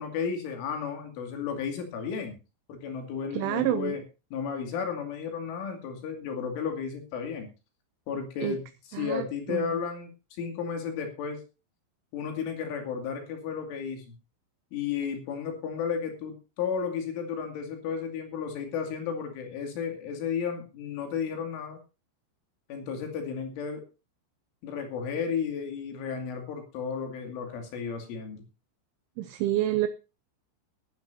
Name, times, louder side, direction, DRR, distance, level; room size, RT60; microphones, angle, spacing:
voice 1, 0.0-2.4 2.7-4.0 4.3-7.5 8.1-8.6 8.9-11.4 12.1-14.1 14.7-21.8 22.7-23.8 24.6-28.4, left 6 dB, 75° left, 4 dB, 4.8 m, -33 dB
voice 2, 3.3-4.0 8.4-8.6 8.9-9.6 29.2-29.9, right 14 dB, 80° right, 10 dB, 3.1 m, -28 dB
19.5 x 11.5 x 2.7 m, 0.30 s
omnidirectional pair, 5.9 m